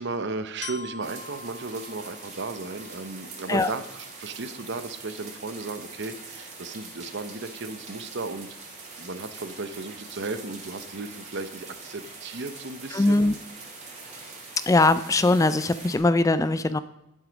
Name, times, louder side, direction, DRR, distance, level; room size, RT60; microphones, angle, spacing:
voice 1, 0.0-8.5 9.0-13.4, right 3 dB, 55° right, 11 dB, 0.8 m, -35 dB
Glockenspiel, 0.6-4.6, left 3 dB, 35° left, 0.8 m, -45 dB
sound 1, 1.0-16.0, right 3 dB, 35° right, 2.3 m, -43 dB
voice 2, 12.9-13.3 14.7-16.8, left 2 dB, 15° left, 13 dB, 0.3 m, -21 dB
11.0 x 8.2 x 5.1 m, 0.85 s
head